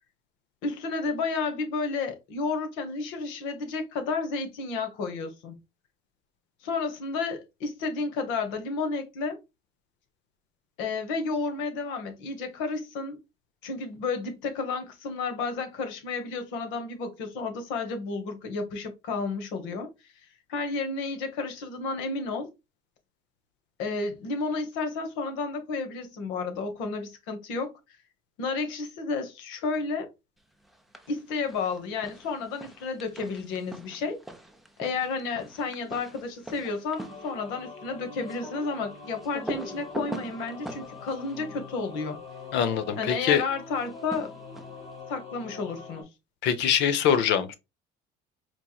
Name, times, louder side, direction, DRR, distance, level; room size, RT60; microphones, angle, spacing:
voice 1, 0.6-5.6 6.6-9.4 10.8-13.2 13.6-19.9 20.5-22.5 23.8-27.7 28.4-30.1 31.1-34.2 34.8-42.2 43.0-44.3 45.1-46.1, left 4 dB, 80° left, 1.1 m, -31 dB
sound 1, 30.6-31.2 31.5-42.5 43.7-44.9, right 1 dB, ahead, 0.6 m, -42 dB
sound 2, 37.0-46.0, left 4 dB, 30° left, 1.4 m, -44 dB
voice 2, 42.5-43.4 46.4-47.6, left 8 dB, 65° left, 0.7 m, -23 dB
4.4 x 2.9 x 2.3 m
cardioid pair, 110°, 20 cm